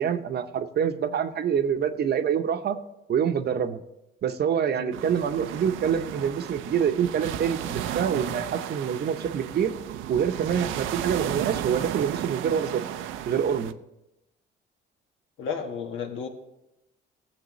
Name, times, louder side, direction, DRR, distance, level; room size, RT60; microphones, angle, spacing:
voice 1, 0.0-2.8 3.1-3.8 4.2-9.7 10.1-12.8 13.2-13.7, right 8 dB, 55° right, 9 dB, 0.8 m, -26 dB
sound 1, 4.9-13.7, right 11 dB, 90° right, 0.5 m, -34 dB
voice 2, 15.4-16.3, left 6 dB, 80° left, 4 dB, 1.3 m, -33 dB
16.0 x 7.3 x 3.1 m, 0.91 s
cardioid pair, 90°, 20 cm